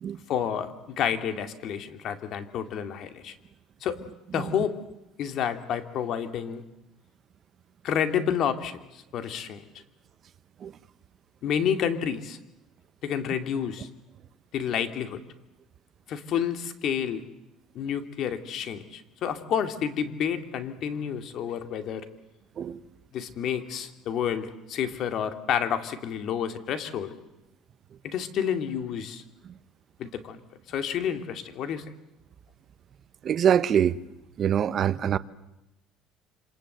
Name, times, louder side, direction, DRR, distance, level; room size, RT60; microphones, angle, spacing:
voice 1, 0.3-3.4 3.8-4.0 4.3-4.8 5.2-6.6 7.8-9.6 11.4-12.4 13.0-13.9 14.5-15.2 16.1-17.3 17.7-22.1 23.1-27.2 28.0-29.2 30.0-30.4 30.7-31.8, left 8 dB, 50° left, 2.4 m, -29 dB
voice 2, 33.2-34.0 34.4-35.2, right 9 dB, 40° right, 1.0 m, -23 dB
27.5 x 26.5 x 8.0 m
cardioid pair, 135°, 0 cm